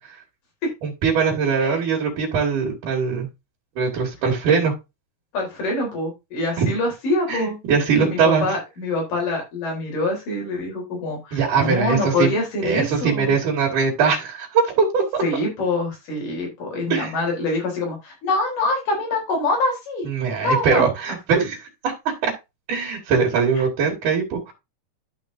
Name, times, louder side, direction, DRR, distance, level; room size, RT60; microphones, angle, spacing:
voice 1, 0.8-3.3 3.8-4.7 6.6-6.7 7.3-8.5 11.3-12.3 12.6-15.2 16.9-17.1 20.0-21.6 21.8-21.9 22.2-22.3 22.7-24.5, right 5 dB, 70° right, -2 dB, 3.5 m, -21 dB
voice 2, 5.3-7.6 8.0-13.4 15.2-20.1 20.4-20.9 23.6-23.7, left 2 dB, 75° left, 0 dB, 5.2 m, -25 dB
12.5 x 5.3 x 2.6 m, 0.24 s
omnidirectional pair, 3.8 m